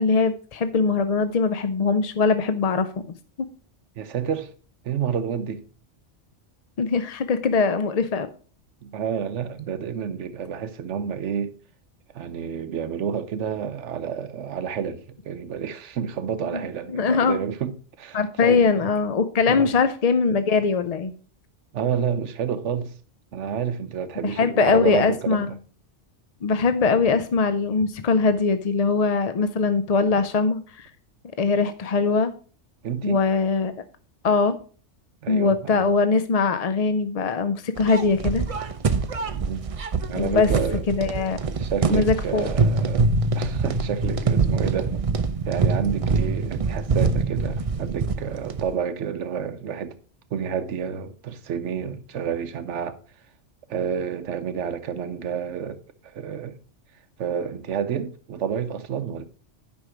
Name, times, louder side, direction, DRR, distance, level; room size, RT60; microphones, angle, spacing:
voice 1, 0.0-2.9 3.4-3.5 6.8-8.3 16.5-16.6 16.9-17.4 18.1-21.1 24.2-25.5 26.4-30.9 31.4-32.3 33.0-33.7 34.2-34.6 35.3-38.4 40.1-40.5 40.9-41.4 41.9-42.5, left 4 dB, 50° left, 0.4 m, -21 dB
voice 2, 4.0-4.5 4.8-5.6 8.8-11.5 12.1-18.9 19.5-19.7 21.7-22.9 23.3-25.6 32.8-33.2 35.2-35.8 39.3-39.6 40.1-40.9 41.6-45.0 45.5-49.9 50.3-53.0 53.7-55.8 56.0-56.6 57.2-59.2, right 7 dB, 80° right, 1.0 m, -29 dB
sound 1, 37.8-48.7, right 4 dB, 40° right, 0.5 m, -24 dB
9.6 x 5.5 x 4.8 m
omnidirectional pair, 1.2 m